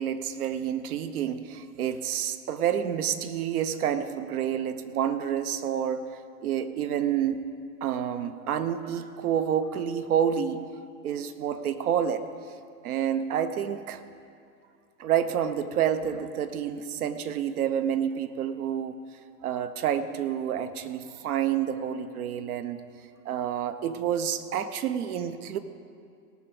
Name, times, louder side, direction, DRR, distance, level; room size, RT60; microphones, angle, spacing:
voice 1, 0.0-7.4 7.8-10.6 11.0-12.2 12.8-14.0 15.0-18.9 19.4-22.8 23.2-25.6, right 9 dB, 60° right, 11 dB, 1.0 m, -28 dB
18.0 x 6.1 x 7.0 m, 2.4 s
hypercardioid pair, 110°, 49 cm